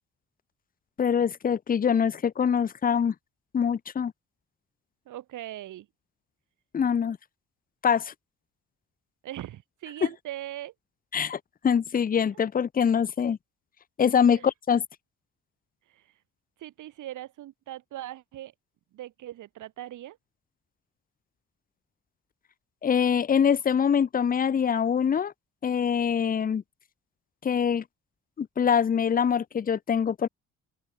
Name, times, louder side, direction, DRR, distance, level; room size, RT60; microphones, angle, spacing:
voice 1, 1.0-3.1 3.5-4.1 6.7-7.2 7.8-8.1 11.1-13.4 14.0-14.8 22.8-25.3 25.6-26.6 27.4-27.8 28.4-30.3, left 7 dB, 30° left, 0.6 m, -24 dB
voice 2, 5.1-5.9 9.2-10.7 14.3-14.5 15.9-16.1 16.6-18.5 18.9-20.2, right 13 dB, 80° right, 4.2 m, -40 dB
open air
cardioid pair, 90°, 30 cm